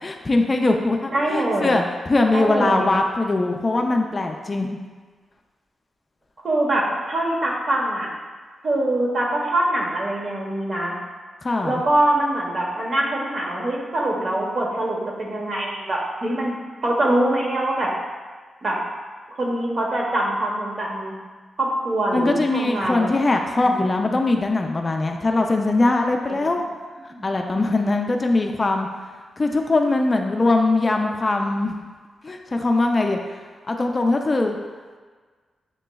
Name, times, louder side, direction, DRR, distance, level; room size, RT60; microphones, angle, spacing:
voice 1, 0.0-4.7 11.4-11.8 22.1-26.6 27.2-28.9 29.4-31.7 32.2-33.2 33.7-34.6, left 2 dB, 30° left, 3 dB, 0.4 m, -21 dB
voice 2, 1.1-1.8 2.3-2.9 6.4-8.1 8.6-10.9 11.6-16.6 16.8-17.9 18.6-18.8 19.3-21.1 21.6-23.1 23.6-24.2 26.3-26.4 27.1-27.3, right 1 dB, 50° right, -2 dB, 1.0 m, -24 dB
7.5 x 3.0 x 2.3 m, 1.5 s
cardioid pair, 90°, 0 cm